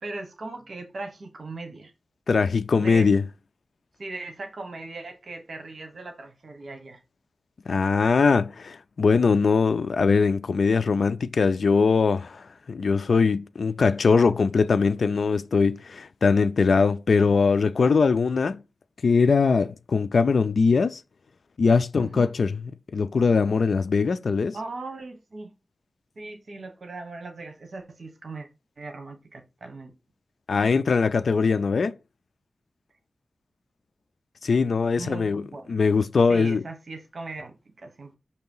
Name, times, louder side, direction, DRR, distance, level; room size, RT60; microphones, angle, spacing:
voice 1, 0.0-1.9 2.8-3.1 4.0-7.0 22.0-22.3 24.5-25.5 26.2-28.5 28.8-29.9 35.0-35.8 36.3-38.2, right 3 dB, 65° right, 1.1 m, -39 dB
voice 2, 2.3-3.2 7.7-18.6 19.0-21.0 21.6-22.6 22.9-24.6 30.5-32.0 34.4-35.4 35.7-36.6, left 4 dB, 75° left, 0.4 m, -21 dB
6.5 x 2.9 x 5.4 m
wide cardioid pair, 95°, 0 cm